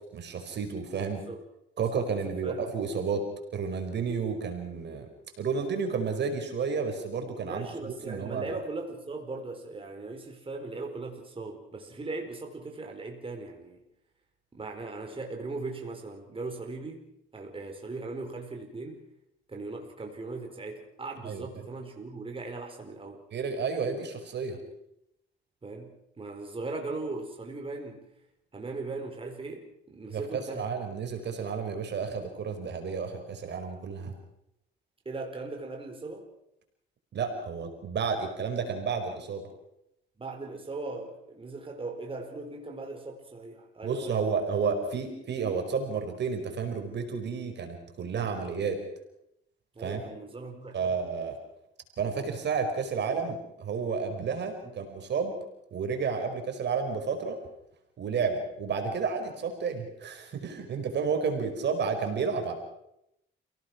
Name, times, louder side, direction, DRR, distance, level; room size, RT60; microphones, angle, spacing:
voice 1, 0.1-1.2 1.8-3.2 3.5-5.1 5.4-8.5 21.2-21.5 23.3-24.6 30.1-30.2 30.5-34.1 37.1-39.5 43.8-48.8 49.8-50.0 50.7-51.4 52.0-55.4 55.7-57.4 58.0-62.5, right 5 dB, 60° right, 4 dB, 5.0 m, -31 dB
voice 2, 1.1-1.4 1.8-2.6 7.4-13.8 14.5-17.1 17.3-19.0 19.5-23.2 25.6-28.0 28.5-30.7 35.0-36.3 40.2-44.5 49.7-50.8 58.8-59.0, right 3 dB, 25° right, 2 dB, 4.5 m, -39 dB
29.0 x 17.5 x 6.1 m, 0.79 s
cardioid pair, 90°, 20 cm